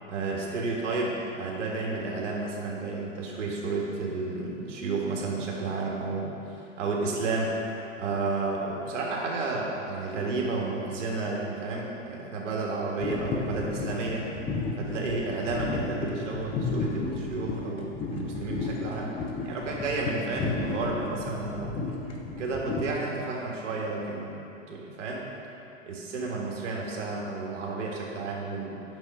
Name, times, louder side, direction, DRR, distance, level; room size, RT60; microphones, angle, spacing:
voice 1, 0.1-7.6 8.0-14.3 14.8-19.2 19.4-21.8 22.4-24.3 24.7-25.2 25.8-28.8, right 3 dB, 65° right, -2 dB, 1.8 m, -31 dB
sound 1, 13.0-22.9, left 3 dB, 15° left, 0.5 m, -33 dB
6.7 x 6.1 x 5.5 m, 2.7 s
hypercardioid pair, 130°, 39 cm